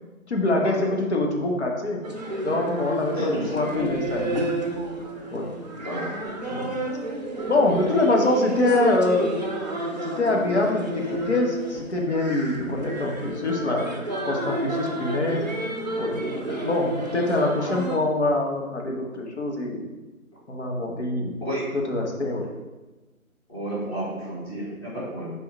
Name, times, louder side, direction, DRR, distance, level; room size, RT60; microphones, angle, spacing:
voice 1, 0.3-2.0 2.4-4.5 5.3-5.5 6.5-6.7 7.5-9.4 10.0-13.9 14.2-15.5 16.0-16.2 16.6-19.9 20.5-21.4 21.7-22.5, left 2 dB, 50° left, 0 dB, 1.3 m, -24 dB
sound 1, 2.0-18.0, right 1 dB, 30° right, 0.6 m, -31 dB
voice 2, 3.1-3.8 5.8-6.1 12.6-12.7 15.1-15.3 21.4-21.6 23.5-25.3, right 1 dB, 15° left, -7 dB, 1.9 m, -31 dB
6.9 x 3.8 x 4.5 m, 1.1 s
figure-of-eight pair, 150°, 43 cm